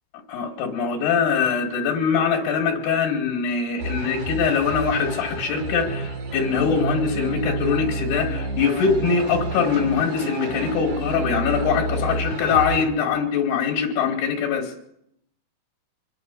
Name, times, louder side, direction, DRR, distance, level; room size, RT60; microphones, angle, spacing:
voice 1, 0.3-14.7, left 6 dB, 85° left, -1 dB, 4.0 m, -23 dB
sound 1, 3.8-12.8, right 2 dB, 55° right, 3.7 m, -29 dB
25.0 x 11.0 x 5.3 m, 0.74 s
omnidirectional pair, 4.5 m